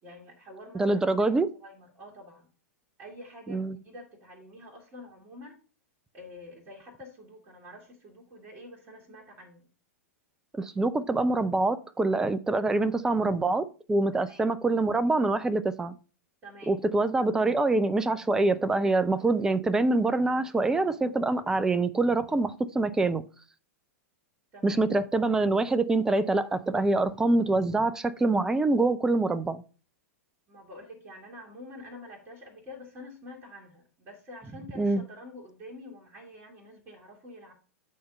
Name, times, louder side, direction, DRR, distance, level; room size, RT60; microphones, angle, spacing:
voice 1, 0.0-2.5 3.0-5.6 6.1-9.7 14.1-14.5 16.4-16.9 24.5-24.9 30.5-37.5, left 1 dB, 25° right, 2.1 m, -47 dB
voice 2, 0.7-1.5 3.5-3.8 10.6-16.0 16.7-23.2 24.6-29.6 34.8-35.0, right 2 dB, 5° right, 0.5 m, -25 dB
8.3 x 4.3 x 5.4 m
figure-of-eight pair, 100°, 8 cm